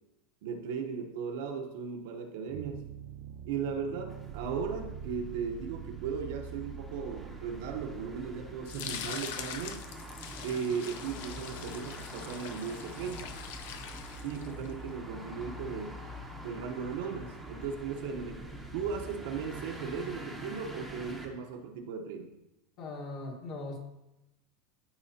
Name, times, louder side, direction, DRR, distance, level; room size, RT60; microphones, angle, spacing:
voice 1, 0.4-2.9 3.4-9.9 10.4-13.3 14.2-16.1 16.4-22.3, right 6 dB, 60° right, 4 dB, 1.0 m, -37 dB
sound 1, 2.5-9.6, right 8 dB, 45° right, 0.3 m, -45 dB
sound 2, 4.1-21.3, equal, ahead, 0.9 m, -45 dB
sound 3, 8.7-14.7, left 8 dB, 60° left, 0.6 m, -43 dB
voice 2, 22.8-23.8, left 2 dB, 35° left, 1 dB, 1.5 m, -40 dB
12.5 x 4.8 x 2.8 m, 0.93 s
supercardioid pair, 175°, 0 cm